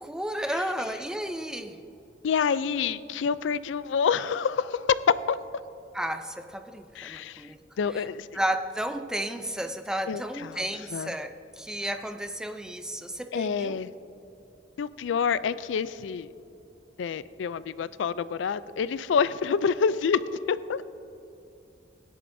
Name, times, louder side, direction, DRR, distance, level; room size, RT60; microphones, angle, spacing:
voice 1, 0.0-1.8 5.9-7.6 7.9-8.0 8.3-13.8, right 1 dB, 5° right, 7 dB, 0.4 m, -33 dB
voice 2, 2.2-5.4 7.0-7.5 7.8-8.3 10.1-10.6 10.9-11.1 13.3-13.9 14.8-16.3 17.0-20.8, left 6 dB, 85° left, 16 dB, 0.4 m, -27 dB
16.5 x 11.0 x 2.6 m, 2.7 s
head